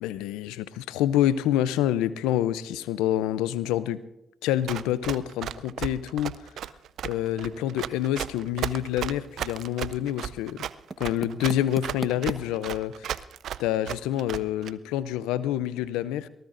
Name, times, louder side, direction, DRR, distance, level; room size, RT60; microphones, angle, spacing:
voice 1, 0.0-4.0 4.4-6.4 7.0-10.7 11.0-13.2 13.6-16.3, left 12 dB, 90° left, 16 dB, 0.5 m, -27 dB
Run, 4.7-14.7, right 10 dB, 75° right, 0.4 m, -34 dB
sound 1, 6.6-12.4, right 4 dB, 45° right, 1.1 m, -43 dB
23.0 x 18.5 x 2.6 m, 0.86 s
supercardioid pair, 50°, 0 cm